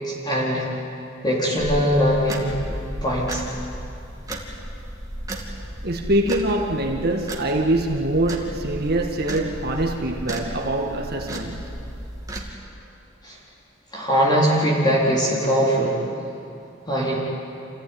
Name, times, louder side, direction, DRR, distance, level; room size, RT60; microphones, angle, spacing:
voice 1, 0.0-0.7 1.2-2.5 3.0-3.4 13.2-13.4 13.9-16.0 16.9-17.2, equal, 20° left, -5 dB, 3.9 m, -21 dB
sound 1, 1.6-12.5, right 1 dB, 20° right, 2.5 m, -34 dB
voice 2, 5.8-11.8, right 1 dB, 50° right, 2 dB, 1.8 m, -24 dB
27.5 x 16.0 x 9.6 m, 2.6 s
head